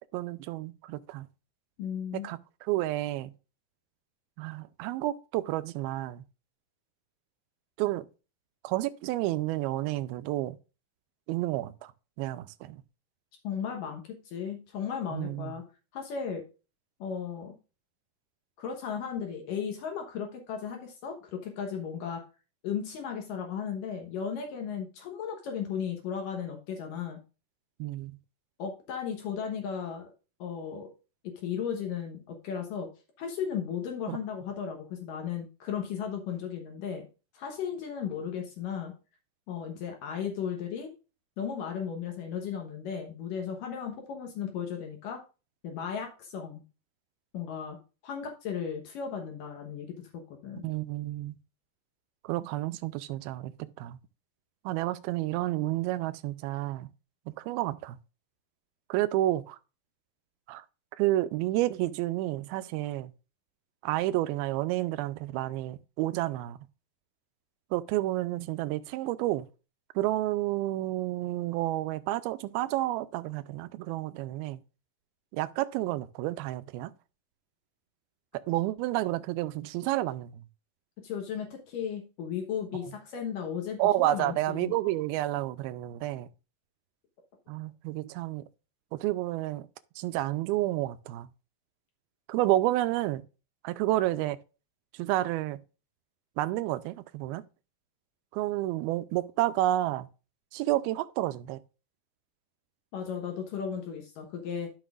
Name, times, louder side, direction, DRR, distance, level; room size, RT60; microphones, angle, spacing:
voice 1, 0.1-1.3 2.2-3.3 4.4-6.2 7.8-8.1 8.6-10.6 11.3-11.9 12.2-12.8 15.1-15.5 27.8-28.2 34.1-34.2 50.6-51.4 52.2-54.0 54.7-56.9 57.3-58.0 58.9-59.6 60.5-60.7 61.0-63.1 63.8-66.6 67.7-69.5 70.0-74.6 75.3-76.9 78.3-80.4 83.8-86.3 87.5-88.4 88.9-89.7 90.0-91.3 92.3-93.2 93.6-94.4 94.9-95.6 96.4-97.4 98.3-100.1 100.5-101.6, right 15 dB, 90° right, 2.5 m, -30 dB
voice 2, 1.8-2.3 13.4-15.6 15.9-16.4 17.0-17.5 18.6-22.2 22.6-27.2 28.6-30.1 30.4-30.9 31.2-32.9 33.2-37.1 37.3-38.9 39.5-40.9 41.4-45.2 45.6-46.6 47.3-47.8 48.0-50.7 81.0-84.7 102.9-104.7, left 7 dB, 70° left, 2.6 m, -35 dB
12.0 x 6.1 x 2.5 m
omnidirectional pair, 4.3 m